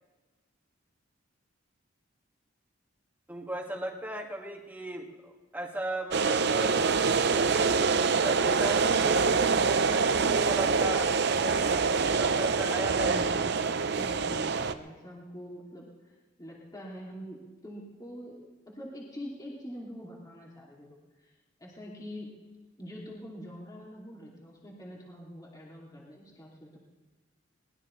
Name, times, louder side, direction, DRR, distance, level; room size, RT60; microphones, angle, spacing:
voice 1, 3.3-6.8 7.3-7.9 8.2-13.2, right 1 dB, 10° right, 0 dB, 2.0 m, -37 dB
sound 1, 6.1-14.7, right 5 dB, 60° right, 0.7 m, -25 dB
voice 2, 12.9-13.6 13.9-21.3 21.6-22.3 22.8-26.8, equal, 20° left, -4 dB, 2.7 m, -45 dB
22.0 x 19.5 x 3.3 m, 1.3 s
head